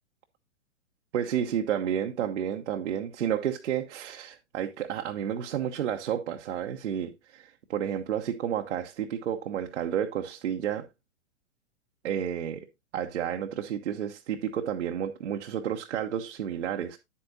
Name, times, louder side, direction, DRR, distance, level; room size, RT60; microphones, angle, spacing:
voice 1, 1.1-10.9 12.0-12.7 12.9-17.0, right 9 dB, 70° right, 1.1 m, -31 dB
9.7 x 8.5 x 2.7 m
hypercardioid pair, 115°, 36 cm